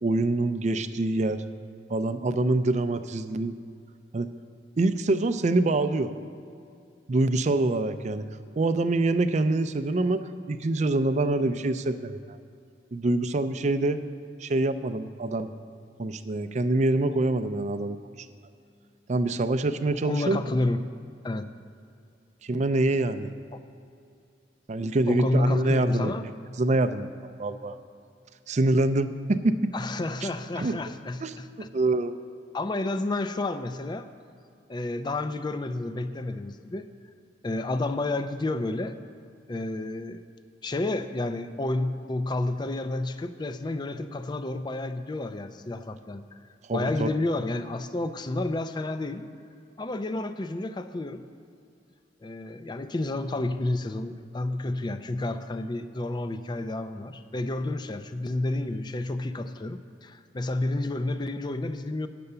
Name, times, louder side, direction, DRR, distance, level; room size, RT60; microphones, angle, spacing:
voice 1, 0.0-1.4 1.9-3.5 4.1-4.3 4.8-6.1 7.1-8.2 8.6-10.2 10.5-12.2 12.9-14.0 14.4-15.5 16.0-18.0 19.1-20.4 22.4-23.3 24.7-26.1 26.6-27.8 28.5-29.5 30.6-30.8 31.2-32.1 46.7-47.1, right 2 dB, 40° right, 10 dB, 0.4 m, -25 dB
voice 2, 20.0-20.8 21.2-21.4 23.5-23.6 25.1-26.2 29.7-31.7 32.5-34.1 34.7-36.9 37.4-39.0 39.5-40.2 40.6-46.2 46.7-49.2 49.8-51.3 52.2-62.1, left 2 dB, 25° left, 10 dB, 0.4 m, -30 dB
9.6 x 6.8 x 6.7 m, 2.5 s
head